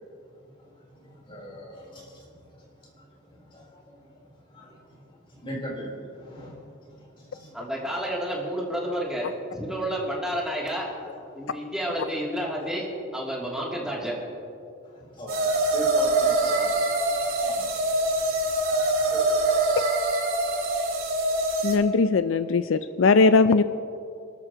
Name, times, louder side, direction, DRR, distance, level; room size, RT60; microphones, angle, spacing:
voice 1, 1.0-2.2 3.3-4.0 4.5-5.0 5.4-6.6 7.2-7.5 14.8-16.7 17.0-17.7 19.1-19.3, equal, 25° left, -3 dB, 3.8 m, -39 dB
voice 2, 7.5-9.3 9.5-10.9 11.3-12.8 13.1-14.2, equal, 5° right, -5 dB, 2.8 m, -30 dB
sound 1, 15.3-21.8, right 2 dB, 90° right, 2.6 m, -24 dB
voice 3, 21.6-23.6, left 4 dB, 70° left, 12 dB, 0.4 m, -20 dB
29.5 x 13.0 x 2.9 m, 2.6 s
head